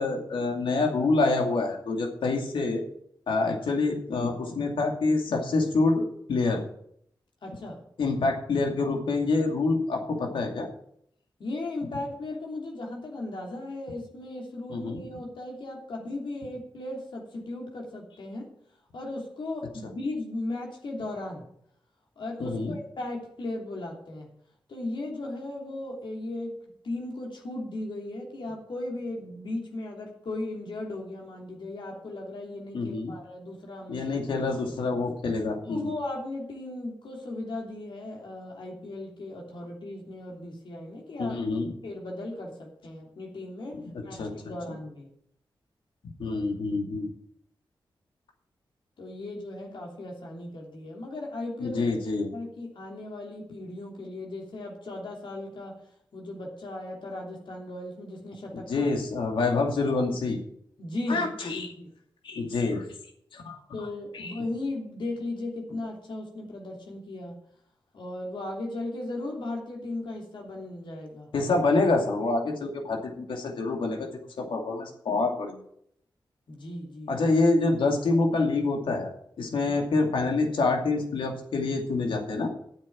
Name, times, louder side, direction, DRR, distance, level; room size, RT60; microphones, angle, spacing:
voice 1, 0.0-2.8 3.3-6.6 8.0-10.7 14.7-15.0 22.4-22.8 32.7-33.1 33.9-35.9 41.2-41.7 43.7-44.3 46.2-47.1 51.6-52.3 58.7-60.4 61.1-61.7 62.2-62.9 63.3-63.6 64.1-64.4 71.3-74.1 74.4-75.6 77.1-79.1 79.4-82.5, left 3 dB, 90° left, 2 dB, 2.5 m, -26 dB
voice 2, 7.4-7.8 11.4-18.5 18.9-21.4 22.2-24.3 24.7-26.6 26.8-34.1 35.7-41.4 41.8-43.8 44.0-45.1 49.0-52.0 52.3-55.7 56.1-58.9 60.8-61.9 63.7-67.4 67.9-71.3 76.5-77.1, left 2 dB, 70° left, 0 dB, 3.1 m, -36 dB
9.8 x 7.3 x 8.8 m, 0.69 s
cardioid pair, 70°, 8 cm